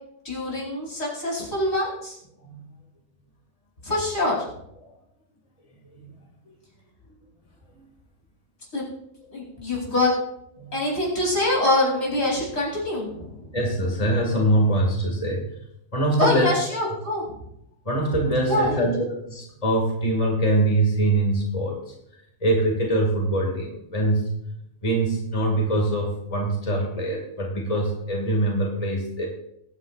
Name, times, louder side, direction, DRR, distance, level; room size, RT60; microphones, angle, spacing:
voice 1, 0.2-2.2 3.8-4.5 8.7-8.8 9.3-10.1 10.7-13.6 16.2-17.4 18.5-18.8, left 1 dB, 85° left, -4 dB, 4.9 m, -24 dB
voice 2, 2.4-2.8 4.8-4.9 5.8-6.1 6.5-6.6 7.8-7.9 10.6-10.7 13.5-15.6 15.9-16.5 17.8-21.9 22.4-24.4 24.8-29.3, right 1 dB, 30° left, 0 dB, 2.4 m, -24 dB
21.5 x 9.4 x 2.5 m, 0.77 s
omnidirectional pair, 1.3 m